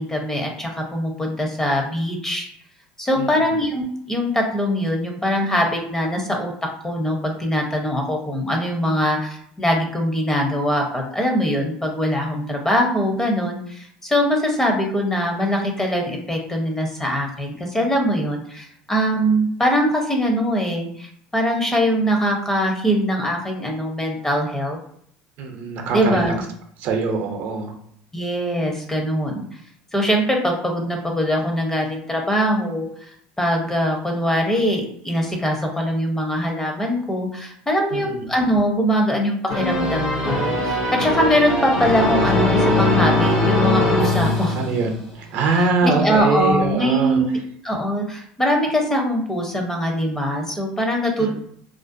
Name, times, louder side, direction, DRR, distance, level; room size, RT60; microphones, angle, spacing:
voice 1, 0.0-2.5 3.0-6.5 6.8-24.8 25.9-26.4 28.1-29.4 29.9-32.9 33.4-44.6 45.8-47.4 47.6-51.3, equal, 15° left, 1 dB, 0.7 m, -22 dB
voice 2, 3.2-3.5 25.4-26.3 26.8-27.7 37.9-38.2 44.2-47.2 51.2-51.3, right 4 dB, 65° right, 3 dB, 0.6 m, -23 dB
sound 1, 39.5-45.1, left 1 dB, 80° left, 0.7 m, -20 dB
2.4 x 2.1 x 2.5 m, 0.66 s
supercardioid pair, 95°, 4 cm